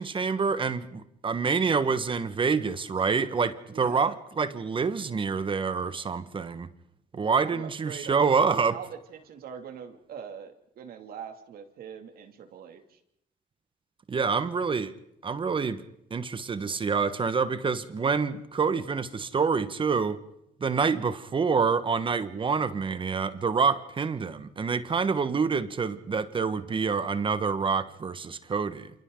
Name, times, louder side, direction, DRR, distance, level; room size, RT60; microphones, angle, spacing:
voice 1, 0.0-6.7 7.1-8.8 14.1-14.9 15.2-15.8 16.1-20.2 20.6-28.9, right 5 dB, 30° right, 1.4 m, -27 dB
voice 2, 3.7-4.2 7.4-8.2 8.7-13.0, right 7 dB, 60° right, 2.6 m, -42 dB
28.0 x 28.0 x 3.9 m
cardioid pair, 110°, 17 cm